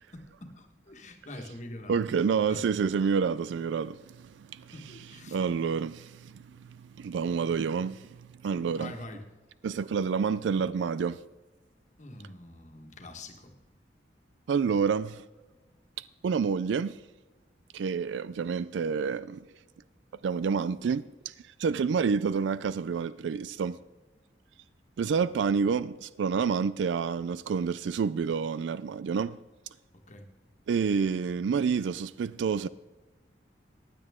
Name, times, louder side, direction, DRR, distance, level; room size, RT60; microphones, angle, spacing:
voice 1, 0.1-2.6 4.7-5.4 8.8-9.3 12.0-13.5 30.1-30.3, left 1 dB, 40° left, 1.5 m, -45 dB
voice 2, 1.9-8.9 9.6-11.2 14.5-15.2 16.0-17.0 17.7-19.4 20.2-21.3 21.6-23.8 25.0-29.4 30.7-32.7, right 6 dB, 85° right, 0.3 m, -29 dB
15.5 x 10.0 x 3.7 m
head